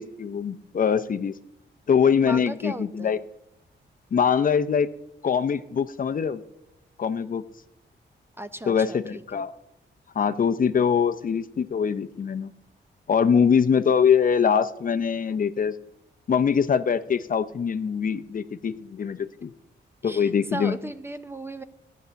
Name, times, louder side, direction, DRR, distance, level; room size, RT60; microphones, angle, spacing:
voice 1, 0.0-1.3 1.9-3.2 4.1-4.9 5.2-6.4 7.0-7.4 8.7-9.5 10.2-12.5 13.1-15.7 16.3-19.5 20.0-20.8, left 7 dB, 45° left, 11 dB, 0.6 m, -23 dB
voice 2, 2.2-3.2 8.4-9.4 20.0-21.6, right 1 dB, 10° right, 11 dB, 0.6 m, -36 dB
14.0 x 9.3 x 6.9 m, 0.86 s
wide cardioid pair, 135°, 19 cm